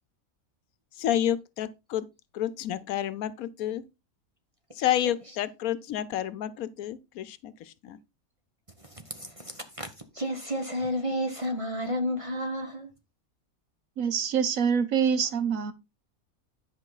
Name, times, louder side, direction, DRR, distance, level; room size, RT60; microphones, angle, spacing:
voice 1, 1.0-2.1 2.3-3.8 4.8-8.0, left 11 dB, 85° left, 1.1 m, -30 dB
voice 2, 8.8-9.9 10.1-12.9, equal, 25° right, 1.0 m, -31 dB
voice 3, 14.0-15.7, right 7 dB, 75° right, 1.3 m, -25 dB
10.5 x 5.5 x 3.9 m
omnidirectional pair, 1.5 m